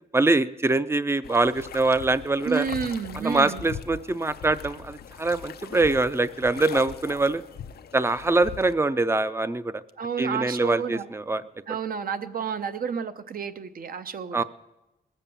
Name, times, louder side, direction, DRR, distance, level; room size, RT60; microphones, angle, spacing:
voice 1, 0.1-2.7 3.2-7.4 7.9-9.7 10.2-11.4 14.3-14.4, right 2 dB, 15° right, 15 dB, 0.4 m, -24 dB
sound 1, 1.2-8.7, left 8 dB, 90° left, 0.5 m, -41 dB
voice 2, 2.5-3.6 10.0-11.1 11.7-14.4, right 6 dB, 65° right, 10 dB, 0.7 m, -30 dB
19.5 x 7.3 x 6.8 m, 0.98 s
wide cardioid pair, 130°, 16 cm